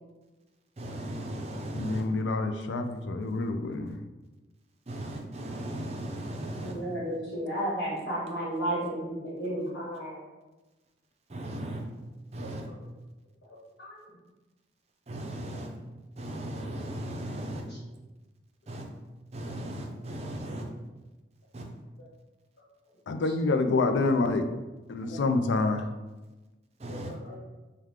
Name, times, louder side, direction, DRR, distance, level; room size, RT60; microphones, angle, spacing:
voice 1, 0.8-2.0 4.9-6.7 11.3-11.8 12.3-12.6 15.1-15.7 16.2-17.6 18.7-18.8 19.3-20.6 21.5-21.6 26.8-27.1, right 1 dB, 35° right, 2 dB, 0.5 m, -37 dB
voice 2, 1.7-4.0 23.1-24.5 24.9-25.8, left 3 dB, 80° left, 7 dB, 0.4 m, -27 dB
voice 3, 6.5-10.2 12.4-12.5 13.8-14.0 17.5-17.8 20.4-20.6 23.5-23.7 25.0-25.6 26.9-27.4, right 1 dB, 60° left, -8 dB, 1.3 m, -34 dB
4.7 x 2.2 x 3.6 m, 1.1 s
head